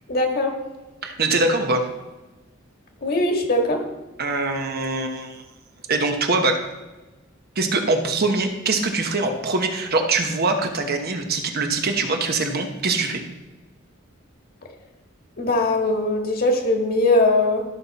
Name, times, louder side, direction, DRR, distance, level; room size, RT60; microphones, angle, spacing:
voice 1, 0.1-0.5 3.0-3.8 15.4-17.6, left 2 dB, 50° left, 2 dB, 1.7 m, -20 dB
voice 2, 1.0-1.9 4.2-5.4 5.9-6.7 7.6-13.2, right 3 dB, 50° right, 4 dB, 1.0 m, -23 dB
13.0 x 5.6 x 4.1 m, 1.1 s
head